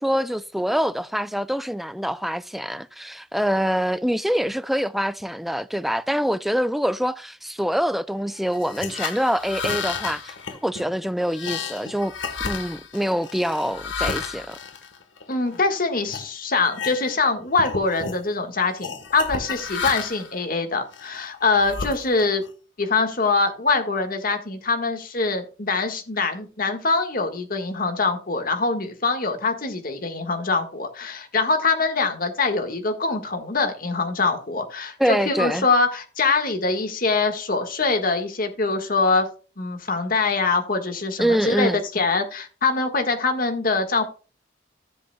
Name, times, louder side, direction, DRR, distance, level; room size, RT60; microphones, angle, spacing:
voice 1, 0.0-10.3 10.6-12.1 12.4-14.6 35.0-35.7 41.2-41.8, equal, ahead, 0.3 m, -25 dB
sound 1, 8.5-15.6 16.1-16.3 16.6-17.3 17.5-18.2 18.8-20.3 20.9-22.5, left 5 dB, 80° left, 1.3 m, -32 dB
voice 2, 15.3-22.4 22.8-39.3 39.6-44.0, left 3 dB, 45° left, 1.6 m, -23 dB
14.0 x 8.0 x 2.3 m
head